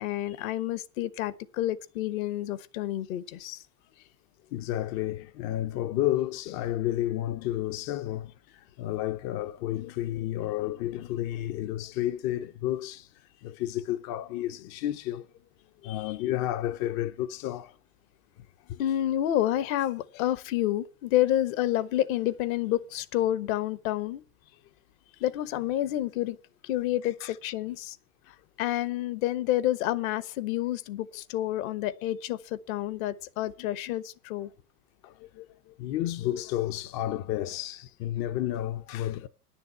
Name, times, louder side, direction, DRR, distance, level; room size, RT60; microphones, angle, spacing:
voice 1, 0.0-3.6 15.8-16.1 18.8-24.2 25.2-26.4 26.6-28.0 28.6-34.5, left 13 dB, 60° left, 1.2 m, -29 dB
voice 2, 4.5-13.1 13.4-15.3 15.8-17.7 18.7-18.8 27.2-27.4 35.0-39.3, left 13 dB, 35° left, 0.6 m, -31 dB
10.5 x 6.9 x 8.3 m
hypercardioid pair, 115°, 47 cm